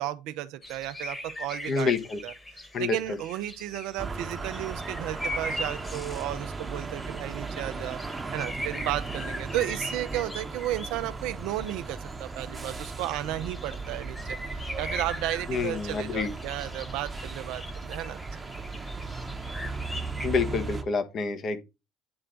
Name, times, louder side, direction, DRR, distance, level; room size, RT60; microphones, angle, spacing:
voice 1, 0.0-1.9 2.2-8.0 8.3-14.4 14.8-18.4, right 14 dB, 70° right, 0.6 m, -33 dB
sound 1, 0.6-20.3, left 1 dB, 20° left, 1.6 m, -41 dB
voice 2, 1.7-2.2 2.7-3.2 15.5-16.3 20.2-21.6, left 4 dB, 45° left, 1.2 m, -28 dB
sound 2, 4.0-20.8, right 4 dB, 25° right, 1.0 m, -37 dB
9.6 x 3.3 x 3.8 m
hypercardioid pair, 65°, 0 cm